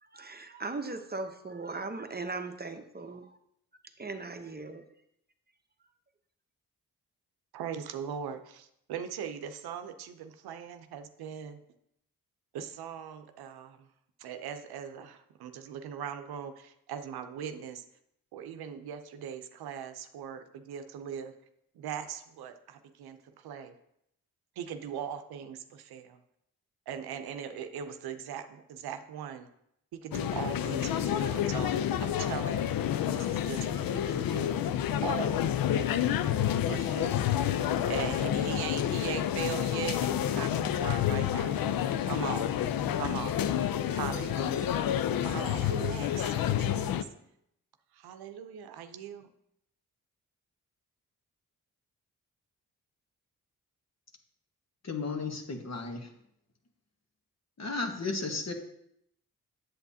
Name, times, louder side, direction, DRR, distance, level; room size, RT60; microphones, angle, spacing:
voice 1, 0.0-3.4 4.0-4.8, right 3 dB, 25° right, 7 dB, 0.9 m, -38 dB
voice 2, 7.5-11.6 12.5-13.8 14.2-17.8 18.3-21.3 21.8-23.2 23.4-23.7 24.6-26.2 26.9-29.5 29.9-32.8 33.1-34.5 35.0-35.4 35.7-35.9 36.7-37.3 37.9-41.6 42.1-42.5 42.9-43.4 43.9-44.7 45.2-46.9 48.0-49.3, right 8 dB, 80° right, 8 dB, 0.7 m, -40 dB
sound 1, 30.1-47.0, left 10 dB, 65° left, 0.5 m, -29 dB
voice 3, 54.8-56.1 57.6-58.5, left 3 dB, 45° left, 3 dB, 1.5 m, -34 dB
8.1 x 7.9 x 2.8 m, 0.75 s
supercardioid pair, 45°, 37 cm